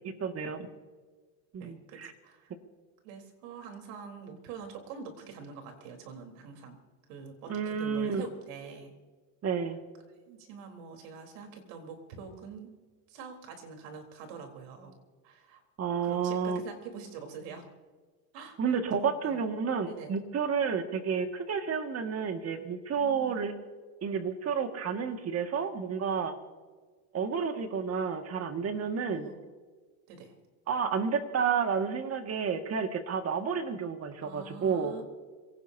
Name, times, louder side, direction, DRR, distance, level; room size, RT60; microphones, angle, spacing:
voice 1, 0.2-0.7 1.5-2.1 7.5-8.2 9.4-9.8 15.8-16.6 18.6-23.5 24.0-26.4 27.1-29.3 30.7-34.9, right 6 dB, 30° right, 6 dB, 2.0 m, -30 dB
voice 2, 1.6-2.5 3.0-6.8 7.1-8.9 10.3-12.7 13.1-15.0 15.2-15.6 16.0-17.7 18.3-19.5 19.8-20.1 22.9-23.4 29.1-29.4 30.1-30.3 34.2-35.0, right 5 dB, 75° right, 3 dB, 4.0 m, -45 dB
26.5 x 18.0 x 2.8 m, 1.4 s
supercardioid pair, 115°, 47 cm